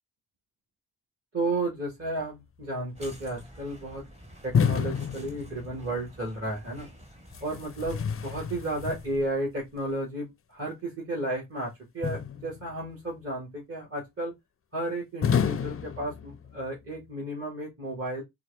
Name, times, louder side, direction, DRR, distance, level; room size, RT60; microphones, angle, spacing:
voice 1, 1.3-4.0 4.4-6.9 7.4-14.3 14.7-18.2, right 1 dB, 35° right, 1.8 m, -33 dB
sound 1, 2.9-9.1, equal, 15° right, 1.2 m, -49 dB
sound 2, 4.5-6.0 7.3-9.4 12.0-12.9 15.2-16.7, left 7 dB, 35° left, 0.4 m, -30 dB
4.4 x 2.5 x 3.3 m
cardioid pair, 50°, 42 cm